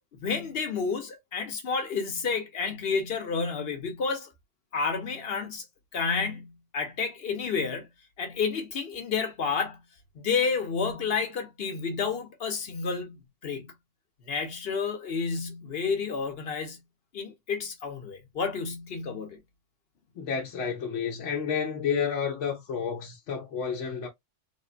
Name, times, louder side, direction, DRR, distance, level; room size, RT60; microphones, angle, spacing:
voice 1, 0.1-4.3 4.7-5.6 5.9-7.9 8.2-9.8 10.1-13.2 13.4-13.7 14.3-16.8 17.1-19.4, left 5 dB, 60° left, 1.1 m, -30 dB
voice 2, 20.2-24.1, left 6 dB, 85° left, 1.0 m, -30 dB
3.6 x 2.1 x 2.4 m
omnidirectional pair, 1.2 m